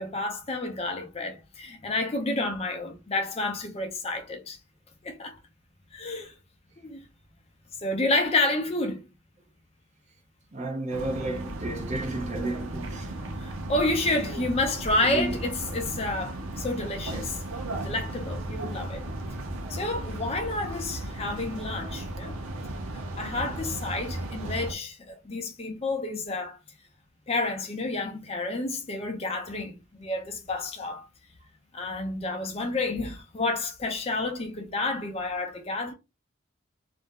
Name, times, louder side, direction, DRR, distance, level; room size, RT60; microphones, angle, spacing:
voice 1, 0.0-4.6 5.0-5.4 5.9-6.3 6.8-7.0 7.8-9.0 13.4-17.4 17.8-19.0 19.7-22.4 22.9-26.6 27.3-31.1 31.7-35.9, left 2 dB, 30° left, 0.5 m, -30 dB
voice 2, 10.5-13.1 15.0-15.4, right 2 dB, 35° right, 0.6 m, -32 dB
sound 1, 10.9-24.7, right 1 dB, 85° right, 0.6 m, -35 dB
2.5 x 2.1 x 3.5 m
head